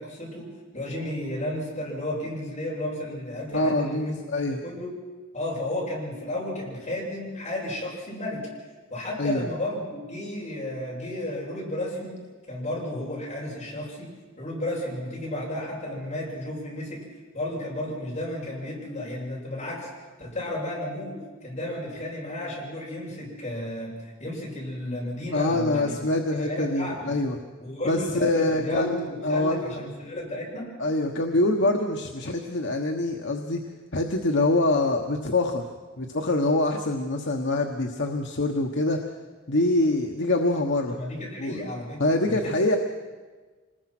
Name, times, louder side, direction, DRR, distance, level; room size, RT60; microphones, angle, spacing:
voice 1, 0.0-4.2 4.6-4.9 5.3-8.5 8.9-12.2 12.5-17.0 17.3-19.9 20.2-23.9 24.2-25.9 26.3-27.2 27.6-30.7 40.9-42.5, left 1 dB, 35° left, -4 dB, 7.7 m, -33 dB
voice 2, 3.5-4.6 9.2-9.4 25.3-27.4 27.8-29.7 30.8-35.6 36.0-39.1 39.5-41.0 41.4-41.6 42.0-42.8, left 2 dB, 60° left, 2 dB, 1.3 m, -25 dB
26.5 x 20.5 x 6.1 m, 1.4 s
head